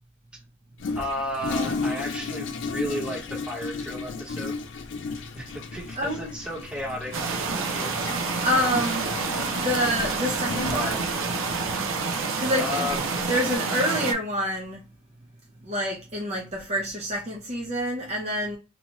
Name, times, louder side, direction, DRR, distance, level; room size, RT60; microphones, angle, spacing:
Toilet flush, 0.8-13.6, left 4 dB, 65° left, 0.4 m, -35 dB
voice 1, 0.9-4.5 5.3-7.9 10.7-11.0 12.6-13.2, left 1 dB, 5° right, 1.0 m, -33 dB
sound 1, 7.1-14.1, right 4 dB, 90° right, 0.6 m, -28 dB
voice 2, 8.4-9.1 9.5-10.9 12.4-12.9 13.3-14.8 15.6-18.6, equal, 35° right, 0.7 m, -27 dB
2.8 x 2.2 x 3.0 m
head